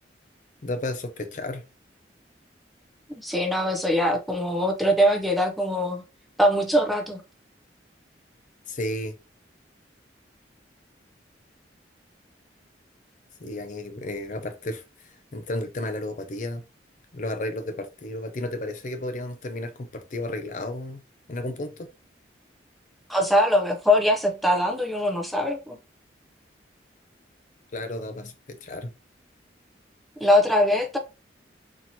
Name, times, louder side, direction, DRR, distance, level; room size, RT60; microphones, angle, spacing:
voice 1, 0.6-1.6 8.7-9.1 13.4-14.8 15.3-16.6 17.1-21.0 21.3-21.9 27.7-28.9, left 1 dB, 45° left, 0.5 m, -32 dB
voice 2, 3.2-6.0 6.4-7.2 23.1-25.8 30.2-31.0, equal, ahead, 0.6 m, -22 dB
4.3 x 2.9 x 2.7 m
head